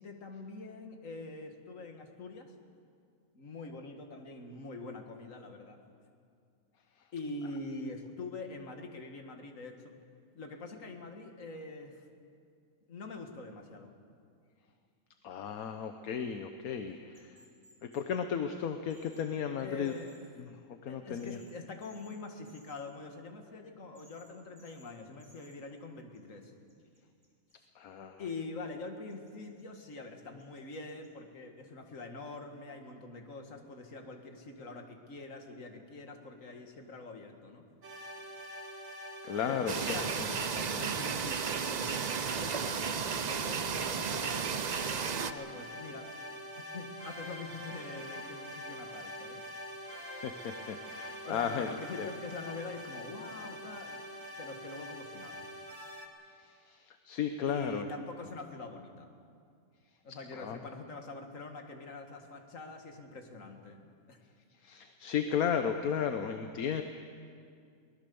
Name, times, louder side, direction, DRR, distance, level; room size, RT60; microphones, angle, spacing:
voice 1, 0.0-2.5 3.3-5.8 7.1-9.9 10.3-12.0 12.9-13.9 19.6-20.1 20.9-26.5 28.2-37.6 39.5-44.4 45.1-46.1 46.7-49.4 51.2-54.0 54.4-55.4 57.5-59.1 60.0-63.8 64.1-64.2, left 3 dB, 60° left, 4 dB, 2.2 m, -44 dB
voice 2, 15.2-17.4 17.8-19.9 20.4-20.6 20.8-21.4 27.7-28.2 39.2-40.3 49.5-49.6 49.9-51.7 52.0-52.1 56.3-57.8 60.3-60.6 64.6-66.8, left 7 dB, 75° left, 7 dB, 1.4 m, -35 dB
sound 1, 17.1-18.0 18.9-19.2 19.8-20.2 21.2-21.5 21.8-22.2 22.4-22.8 23.9-24.3 24.6-24.9 25.2-25.5 26.1-27.5 29.1-29.9 30.4-31.1, right 1 dB, 15° right, 3.6 m, -62 dB
sound 2, 37.8-56.1, equal, 85° right, 2.5 m, -45 dB
sound 3, 39.7-45.3, right 6 dB, 45° right, 0.5 m, -33 dB
23.5 x 19.0 x 7.0 m, 2.3 s
omnidirectional pair, 1.5 m